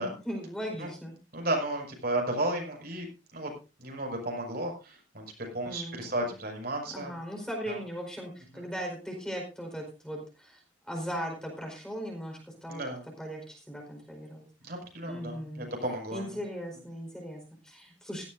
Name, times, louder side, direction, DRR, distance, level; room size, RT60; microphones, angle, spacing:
voice 1, 0.0-1.2 5.6-6.3 6.9-10.6 10.9-12.8 13.2-14.4 15.1-15.7 16.1-18.2, equal, 5° left, 1 dB, 4.8 m, -38 dB
voice 2, 1.3-3.1 3.3-3.5 3.8-7.1 7.7-7.8 8.5-8.6 12.7-13.0 14.6-16.4, right 1 dB, 50° right, 1 dB, 6.2 m, -33 dB
17.0 x 16.0 x 2.7 m, 0.31 s
head